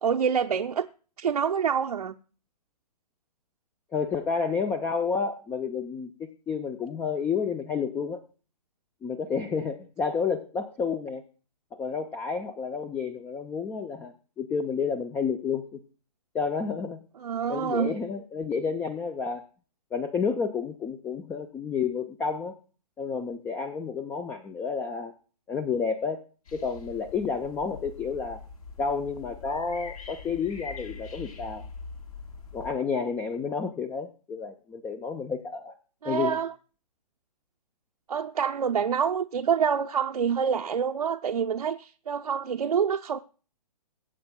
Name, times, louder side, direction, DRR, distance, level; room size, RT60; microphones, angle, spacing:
voice 1, 0.0-0.9 1.2-2.1 17.2-18.0 36.0-36.5 38.1-43.2, right 7 dB, 70° right, 0.6 m, -26 dB
voice 2, 3.9-8.2 9.0-11.2 11.7-15.8 16.3-17.0 17.5-19.4 19.9-22.6 23.0-25.1 25.5-26.2 26.5-28.4 28.8-31.6 32.5-35.7 36.0-36.4, left 5 dB, 10° left, 0.4 m, -30 dB
sound 1, 26.4-32.7, left 4 dB, 60° left, 3.6 m, -43 dB
22.0 x 8.6 x 2.2 m
figure-of-eight pair, 130°, 21 cm